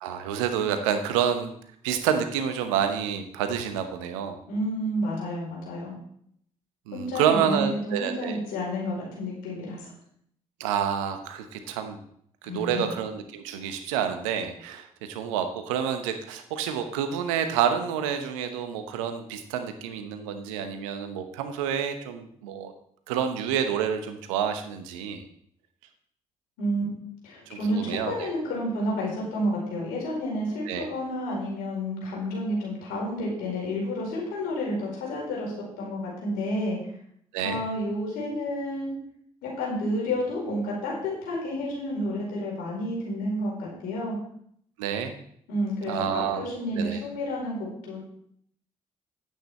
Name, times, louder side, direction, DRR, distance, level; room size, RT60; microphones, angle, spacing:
voice 1, 0.0-1.5 1.8-4.4 6.9-8.4 10.6-12.0 12.4-22.7 23.1-25.2 27.5-28.3 30.7-30.9 37.3-37.6 44.8-45.1 45.9-46.4 46.7-47.0, right 8 dB, 80° right, 7 dB, 0.9 m, -28 dB
voice 2, 4.5-5.9 6.9-9.9 12.4-12.8 26.6-26.8 27.2-36.8 37.4-39.0 39.4-44.1 45.5-48.1, equal, 70° left, -3 dB, 4.7 m, -30 dB
10.5 x 8.5 x 4.2 m, 0.67 s
hypercardioid pair, 40°, 16 cm